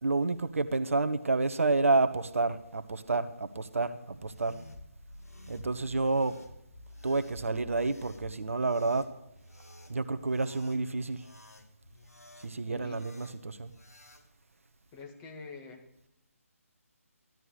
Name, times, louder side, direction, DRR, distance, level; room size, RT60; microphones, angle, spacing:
voice 1, 0.0-4.6 5.5-6.4 7.0-9.1 9.9-11.2 12.4-13.7, right 3 dB, 60° right, 11 dB, 1.2 m, -29 dB
sound 1, 4.1-14.3, left 1 dB, 80° left, 2.4 m, -52 dB
voice 2, 12.7-13.0 14.9-15.9, left 4 dB, 20° left, 3 dB, 2.4 m, -46 dB
16.0 x 12.5 x 6.7 m, 0.82 s
figure-of-eight pair, 145°, 8 cm